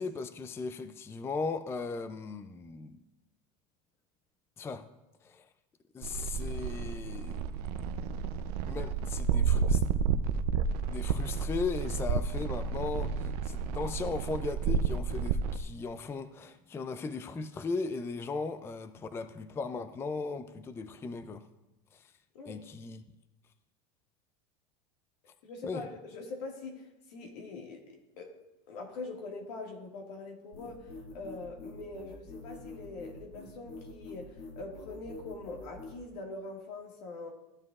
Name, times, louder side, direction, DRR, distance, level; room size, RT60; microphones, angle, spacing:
voice 1, 0.0-3.0 4.6-4.9 5.2-5.5 5.9-7.5 8.6-9.8 10.8-21.4 21.9-22.0 22.4-23.0 25.6-25.8, left 4 dB, 10° left, 0.3 m, -37 dB
sound 1, 6.0-15.6, right 6 dB, 80° right, 0.5 m, -31 dB
voice 2, 22.3-22.7 25.4-28.3 28.7-37.3, left 3 dB, 80° left, 1.9 m, -43 dB
sound 2, 30.5-36.0, left 3 dB, 55° left, 2.1 m, -46 dB
14.5 x 7.5 x 2.4 m
supercardioid pair, 125°, 20 cm